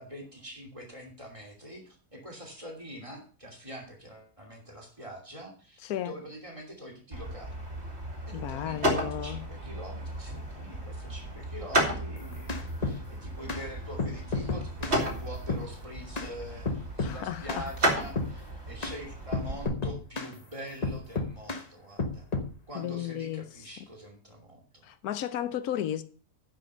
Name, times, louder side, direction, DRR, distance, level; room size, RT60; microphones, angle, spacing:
voice 1, 0.0-7.6 8.3-16.7 17.0-22.3 22.7-24.9, equal, 20° right, 2.8 m, -44 dB
voice 2, 5.8-6.1 8.3-9.4 17.0-17.7 22.7-23.4 24.8-26.0, left 11 dB, 75° left, 1.3 m, -33 dB
sound 1, 7.1-19.6, right 1 dB, 45° right, 2.6 m, -34 dB
sound 2, 12.2-13.0 13.5-13.6 14.0-15.0 15.5-15.7 16.2-16.3 16.7-17.2 17.5-17.7 18.2-18.4 18.8-19.0 19.3-20.3 20.8-21.6 22.0-22.5, left 3 dB, 30° left, 1.0 m, -31 dB
9.7 x 6.0 x 6.5 m
omnidirectional pair, 1.6 m